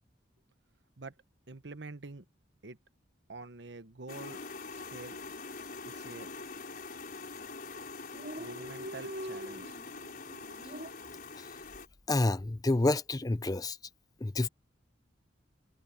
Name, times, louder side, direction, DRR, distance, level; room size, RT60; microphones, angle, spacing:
voice 1, 1.5-2.3 2.6-2.8 3.3-5.2 5.8-6.3 7.2-7.3 8.4-9.8 10.5-10.6, right 3 dB, 70° right, 1.1 m, -47 dB
sound 1, 4.1-11.9, left 4 dB, 50° left, 4.8 m, -44 dB
Dog, 4.7-4.9 5.2-5.3 5.6-6.3 6.9-7.1 7.4-7.5 7.7-7.8 8.0-10.9, equal, 55° right, 2.4 m, -44 dB
voice 2, 12.1-13.8 14.2-14.5, left 2 dB, 20° left, 0.5 m, -28 dB
head